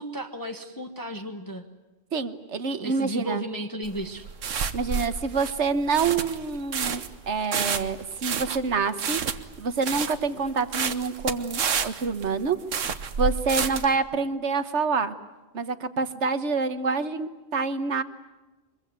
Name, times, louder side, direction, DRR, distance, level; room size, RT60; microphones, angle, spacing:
voice 1, 0.0-1.6 2.8-4.3, equal, 15° left, 5 dB, 1.2 m, -34 dB
voice 2, 2.1-3.4 4.7-9.2 9.6-12.6 13.2-15.1 15.5-18.0, right 4 dB, 65° right, 12 dB, 1.5 m, -27 dB
sound 1, 3.8-14.0, right 6 dB, 85° right, 1.5 m, -30 dB
24.0 x 22.5 x 9.5 m, 1.1 s
omnidirectional pair, 1.3 m